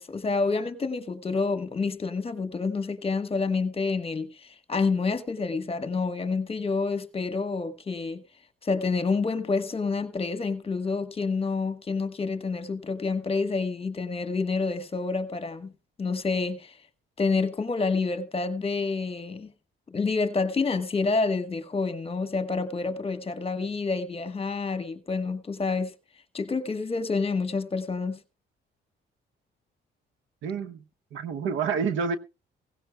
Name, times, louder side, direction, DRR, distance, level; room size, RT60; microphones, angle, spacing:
voice 1, 0.0-8.2 8.6-15.7 16.0-16.7 17.2-19.5 19.9-25.9 26.3-28.2, left 4 dB, 30° left, 1.3 m, -28 dB
voice 2, 30.4-30.8 31.1-32.2, right 6 dB, 80° right, 0.9 m, -28 dB
17.0 x 16.0 x 2.3 m
cardioid pair, 90°, 20 cm